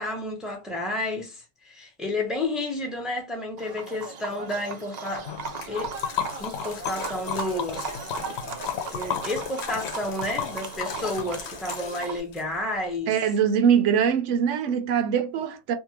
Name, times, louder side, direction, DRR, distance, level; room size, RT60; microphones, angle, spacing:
voice 1, 0.0-5.3 5.7-5.9 6.4-8.0 8.9-13.2, left 1 dB, ahead, 0.6 m, -31 dB
Livestock farm animals working animals, 3.6-12.2, right 5 dB, 65° right, 0.4 m, -37 dB
Liquid, 5.3-12.4, left 8 dB, 70° left, 0.8 m, -34 dB
voice 2, 13.1-15.8, right 8 dB, 80° right, 0.9 m, -22 dB
2.7 x 2.4 x 2.9 m
omnidirectional pair, 1.2 m